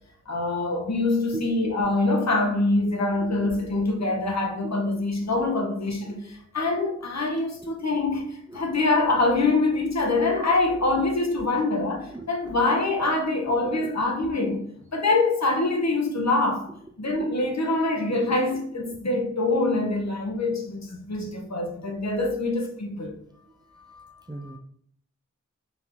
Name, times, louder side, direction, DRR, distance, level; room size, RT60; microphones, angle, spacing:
voice 1, 0.3-16.7 17.0-23.2 23.9-24.1 24.4-24.6, left 2 dB, 60° left, 1.0 m, -25 dB
voice 2, 12.1-12.6 13.8-13.9 24.3-24.6, right 2 dB, 15° right, 0.4 m, -37 dB
4.1 x 3.5 x 2.9 m
wide cardioid pair, 55°, 30 cm